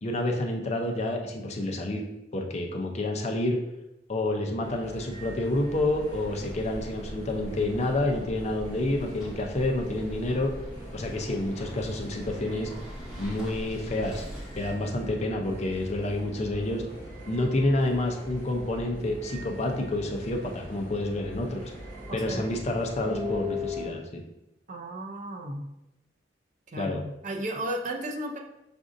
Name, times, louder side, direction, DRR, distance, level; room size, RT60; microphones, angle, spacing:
voice 1, 0.0-2.0 2.3-3.6 4.1-10.5 10.9-12.7 13.1-14.2 14.5-16.8 17.2-21.7 22.1-24.2 26.8-27.0, left 1 dB, 40° left, 2 dB, 0.5 m, -29 dB
sound 1, 4.6-23.9, left 1 dB, 15° left, 1.1 m, -40 dB
sound 2, 5.7-14.7, equal, 5° right, 1.5 m, -44 dB
voice 2, 22.1-22.5 24.7-25.7 26.7-28.4, right 1 dB, 45° right, 2 dB, 0.5 m, -34 dB
6.0 x 2.6 x 2.5 m, 0.88 s
head